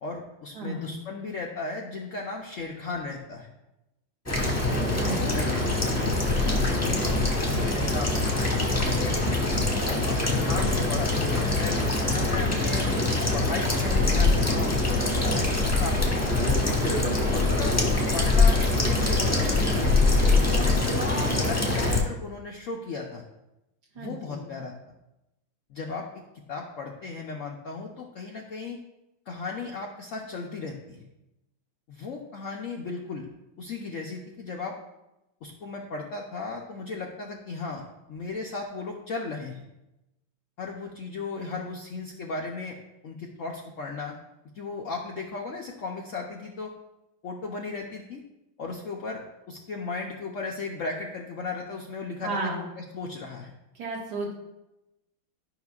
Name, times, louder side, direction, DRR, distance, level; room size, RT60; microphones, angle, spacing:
voice 1, 0.0-3.5 5.0-5.5 5.9-7.0 7.5-9.2 9.7-11.8 12.0-12.9 13.3-16.3 17.3-17.8 18.1-23.2 24.0-24.7 25.7-26.1 26.5-28.8 29.3-31.1 31.9-33.3 33.6-34.8 35.4-37.8 38.1-39.6 40.6-42.8 43.0-44.2 44.5-46.7 47.2-48.2 48.6-53.5, left 4 dB, 80° left, 0 dB, 0.7 m, -36 dB
voice 2, 0.5-1.0 5.0-5.5 23.9-24.4 52.2-52.6 53.8-54.3, right 2 dB, 55° right, -2 dB, 2.0 m, -33 dB
sound 1, 4.3-22.0, left 2 dB, 10° left, 0.8 m, -24 dB
12.0 x 5.6 x 2.4 m, 0.94 s
omnidirectional pair, 2.2 m